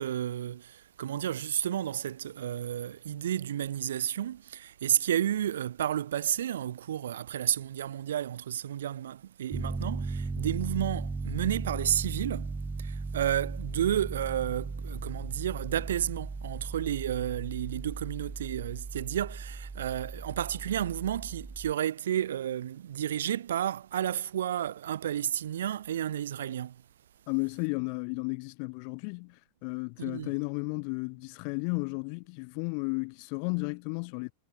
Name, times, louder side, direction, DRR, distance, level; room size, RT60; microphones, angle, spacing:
voice 1, 0.0-26.8 30.0-30.3, right 10 dB, 60° right, 2.2 m, -31 dB
Piano, 9.5-21.7, right 3 dB, 10° right, 2.7 m, -37 dB
voice 2, 27.3-34.3, left 40 dB or more, 45° left, 1.4 m, -33 dB
figure-of-eight pair, 90°, 0 cm